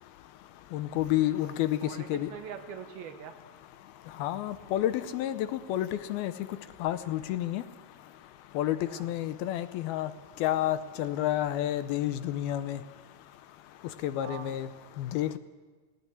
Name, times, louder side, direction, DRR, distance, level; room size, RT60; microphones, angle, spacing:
voice 1, 0.7-1.8 2.1-2.3 4.2-6.3 6.8-7.6 8.6-10.1 10.4-12.8 14.0-14.7 15.0-15.4, left 13 dB, 80° left, 12 dB, 2.5 m, -30 dB
voice 2, 1.8-3.4 8.9-9.1 14.2-14.8, right 8 dB, 75° right, 7 dB, 3.0 m, -43 dB
17.5 x 17.0 x 9.6 m, 1.4 s
omnidirectional pair, 4.6 m